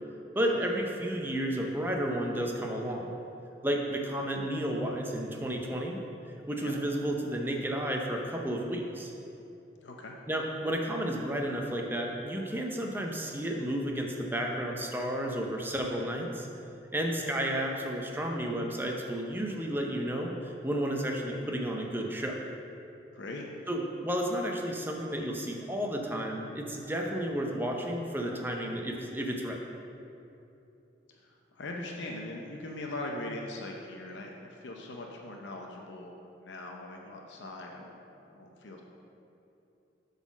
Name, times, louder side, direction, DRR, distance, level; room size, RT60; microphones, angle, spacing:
voice 1, 0.4-3.1 3.6-6.0 6.5-9.1 10.3-16.5 16.9-22.5 23.7-29.6, right 1 dB, 10° right, 1 dB, 0.6 m, -32 dB
voice 2, 9.8-10.1 23.1-23.5 31.1-38.0 38.3-38.8, left 2 dB, 80° left, 0 dB, 0.7 m, -41 dB
7.8 x 4.1 x 6.0 m, 2.8 s
head